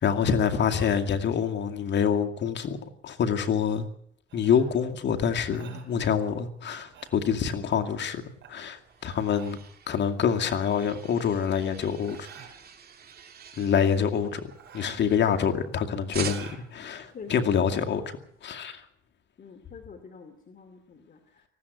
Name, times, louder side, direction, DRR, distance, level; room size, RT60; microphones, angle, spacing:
voice 1, 0.0-3.9 4.3-9.6 9.9-12.3 13.6-18.8, left 7 dB, 65° left, 2.3 m, -26 dB
sound 1, 4.3-17.8, right 7 dB, 65° right, 5.1 m, -51 dB
sound 2, 8.4-15.7 16.1-16.8, right 7 dB, 50° right, 2.9 m, -45 dB
voice 2, 19.4-21.4, left 5 dB, 45° left, 2.7 m, -46 dB
19.0 x 15.0 x 9.5 m
cardioid pair, 90°, 20 cm